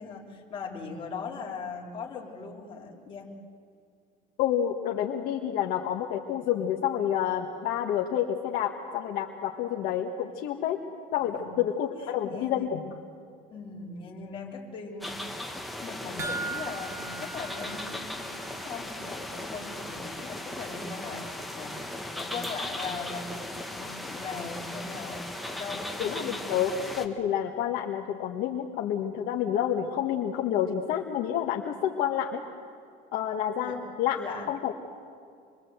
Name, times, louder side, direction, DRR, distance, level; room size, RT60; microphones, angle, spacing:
voice 1, 0.0-3.3 11.2-11.5 12.0-12.8 13.5-15.5 15.8-26.4 33.6-33.8 34.2-34.5, left 4 dB, 30° left, -2 dB, 3.5 m, -40 dB
voice 2, 4.4-10.8 11.1-12.8 26.0-32.4 33.1-34.2 34.5-34.7, left 10 dB, 55° left, 2 dB, 1.5 m, -29 dB
sound 1, 15.0-27.1, left 1 dB, ahead, 1.5 m, -37 dB
sound 2, 16.2-18.7 19.0-19.1 19.6-19.7, right 3 dB, 15° right, 1.2 m, -38 dB
26.5 x 22.5 x 8.0 m, 2.3 s
cardioid pair, 160°, 18 cm